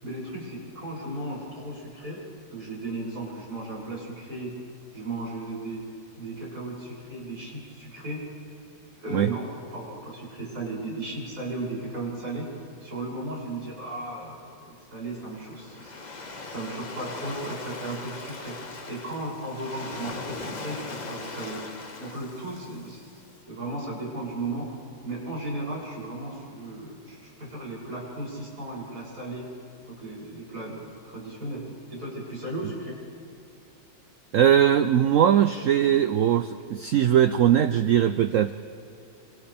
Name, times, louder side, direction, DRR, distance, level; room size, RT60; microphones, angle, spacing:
voice 1, 0.0-2.2 2.5-4.6 4.9-5.8 6.2-8.2 8.9-9.4 9.7-12.5 12.8-15.9 16.5-18.6 18.9-21.6 22.0-23.1 23.5-24.7 25.0-29.5 29.9-33.0, right 2 dB, 50° right, -6 dB, 7.7 m, -35 dB
Waves surf, 15.1-23.3, left 3 dB, 30° left, 1.0 m, -40 dB
voice 2, 34.3-38.5, right 10 dB, 75° right, 10 dB, 0.7 m, -20 dB
27.5 x 27.0 x 3.5 m, 2.6 s
omnidirectional pair, 2.0 m